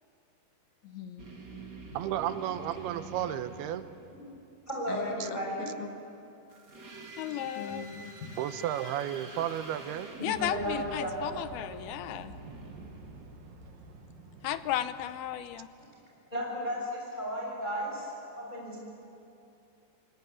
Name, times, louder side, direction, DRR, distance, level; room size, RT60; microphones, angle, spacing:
voice 1, 0.8-1.4 4.9-5.4 5.8-5.9 7.5-8.4, left 6 dB, 55° left, 4 dB, 2.9 m, -42 dB
sound 1, 1.2-4.5 6.5-13.8, right 3 dB, 30° right, 2.5 m, -48 dB
voice 2, 1.9-3.9 5.2-5.3 8.4-10.1, right 11 dB, 85° right, 11 dB, 2.9 m, -33 dB
voice 3, 4.7-5.6 10.2-11.3 16.3-18.1 18.3-18.8, equal, 10° left, -3 dB, 6.2 m, -34 dB
voice 4, 7.2-7.9 10.2-12.3 14.4-15.7, left 12 dB, 80° left, 12 dB, 2.7 m, -34 dB
sound 2, 10.3-15.7, right 2 dB, 65° right, 3.3 m, -48 dB
27.0 x 19.5 x 9.9 m, 2.7 s
omnidirectional pair, 4.5 m